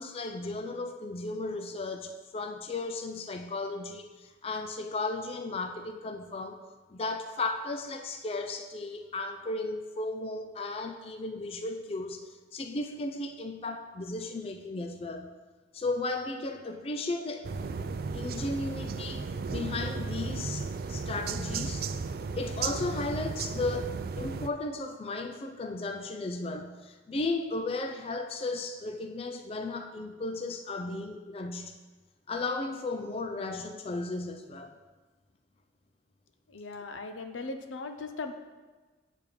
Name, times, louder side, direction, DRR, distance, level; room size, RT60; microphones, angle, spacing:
voice 1, 0.0-6.6 6.9-15.4 15.7-17.5 18.1-21.9 22.4-31.7 32.3-34.8, left 2 dB, 30° left, 5 dB, 0.3 m, -35 dB
sound 1, 17.4-24.5, right 4 dB, 50° right, 0.3 m, -34 dB
voice 2, 36.5-38.3, left 3 dB, 90° left, 7 dB, 0.7 m, -38 dB
8.6 x 3.5 x 6.5 m, 1.3 s
head